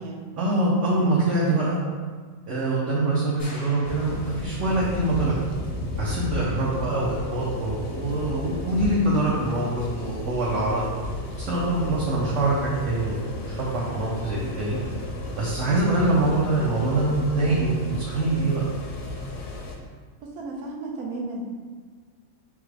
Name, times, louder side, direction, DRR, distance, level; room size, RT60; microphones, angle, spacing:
voice 1, 0.4-1.8 2.5-5.4 6.0-10.9 11.4-14.8 15.4-18.6, right 2 dB, 60° right, -6 dB, 1.0 m, -24 dB
sound 1, 3.4-4.9, left 1 dB, 40° left, 0.7 m, -45 dB
sound 2, 3.8-19.7, left 2 dB, 65° left, 1.1 m, -34 dB
voice 2, 6.6-6.9 20.2-21.4, right 2 dB, 75° right, -1 dB, 1.2 m, -34 dB
4.0 x 3.6 x 3.3 m, 1.5 s
omnidirectional pair, 1.6 m